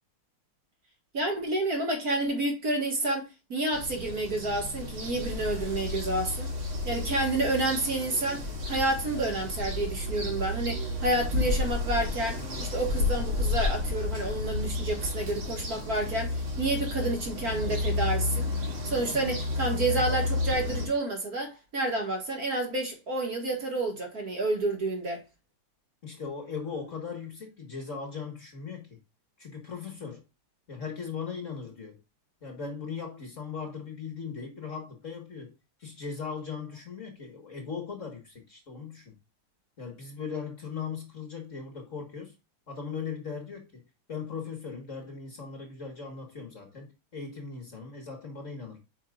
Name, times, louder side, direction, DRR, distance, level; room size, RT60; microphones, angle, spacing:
voice 1, 1.1-6.5 6.9-18.5 18.8-25.2, right 2 dB, 45° right, 2.0 m, -29 dB
sound 1, 3.7-20.9, left 2 dB, 70° right, 3.3 m, -31 dB
voice 2, 26.0-29.0 29.4-30.2 30.7-32.0 32.4-35.5 35.8-39.1 39.8-42.4 42.7-43.8 44.1-48.8, left 5 dB, 40° left, 1.6 m, -38 dB
8.6 x 5.5 x 2.4 m
omnidirectional pair, 2.4 m